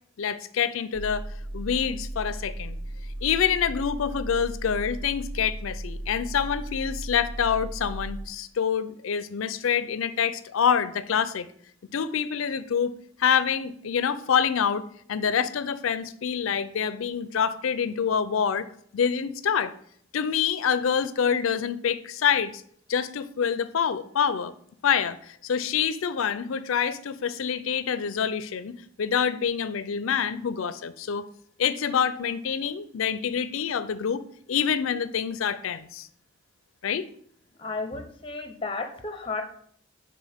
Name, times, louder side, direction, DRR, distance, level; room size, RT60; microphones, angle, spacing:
voice 1, 0.2-1.3 1.5-2.8 3.2-11.5 11.9-12.9 13.2-14.8 15.1-18.7 18.9-19.7 20.1-22.6 22.9-24.5 24.8-31.3 31.6-36.1 36.8-37.1, left 7 dB, 80° left, 0.4 m, -26 dB
sound 1, 0.9-8.3, right 1 dB, 40° right, 0.5 m, -36 dB
voice 2, 37.6-39.4, left 3 dB, 25° left, 0.6 m, -33 dB
9.2 x 3.8 x 3.5 m
head